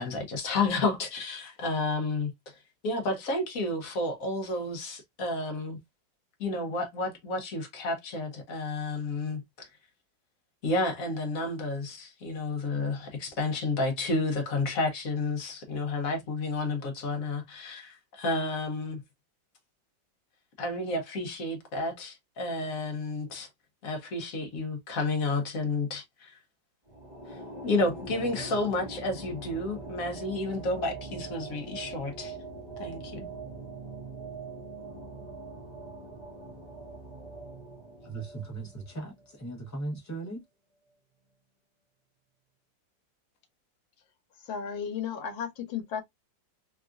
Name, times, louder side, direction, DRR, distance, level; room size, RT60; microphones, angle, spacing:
voice 1, 0.0-2.3 2.8-5.8 6.4-9.7 10.6-19.0 20.6-23.5 23.8-26.4 27.6-32.3 32.8-33.3, left 2 dB, 60° left, 1.0 m, -31 dB
sound 1, 26.9-39.4, right 3 dB, 25° right, 0.6 m, -42 dB
voice 2, 38.0-40.4, right 3 dB, 20° left, 0.4 m, -38 dB
voice 3, 44.4-46.0, left 7 dB, 85° left, 1.5 m, -34 dB
3.5 x 2.4 x 2.3 m
omnidirectional pair, 2.0 m